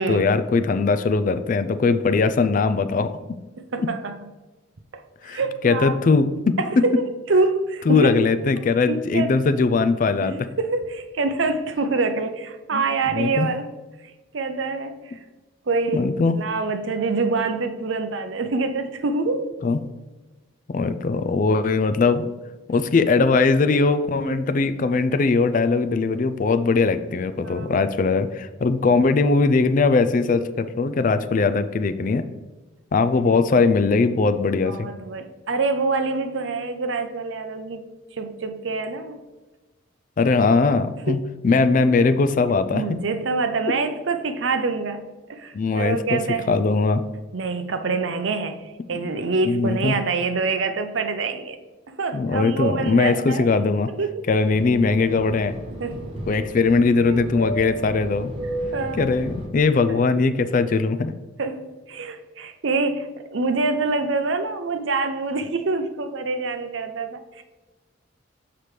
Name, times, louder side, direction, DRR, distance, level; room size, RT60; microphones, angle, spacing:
voice 1, 0.1-3.2 3.8-3.9 5.2-6.9 7.9-10.5 12.7-13.5 15.9-16.4 19.6-19.8 20.7-22.3 22.7-32.3 32.9-34.9 40.2-41.2 41.4-43.0 45.5-46.2 46.5-47.0 48.9-49.1 49.5-49.9 52.1-53.9 54.3-55.6 56.3-58.3 59.0-61.1, left 4 dB, 40° left, 10 dB, 0.3 m, -20 dB
voice 2, 3.6-4.2 4.9-6.0 6.6-8.2 8.9-9.3 10.2-13.7 14.3-15.2 15.7-16.1 16.3-19.5 24.2-24.4 27.4-27.9 34.6-37.8 38.2-39.2 41.1-41.2 42.7-45.0 45.3-46.5 47.3-51.6 51.9-53.4 54.0-54.3 55.7-56.1 57.0-57.2 58.7-59.1 61.4-67.4, right 3 dB, 70° right, 8 dB, 0.6 m, -26 dB
Fixed-wing aircraft airplane, 54.4-59.5, right 1 dB, 30° right, 1.2 m, -33 dB
6.8 x 5.8 x 3.2 m, 1.2 s
head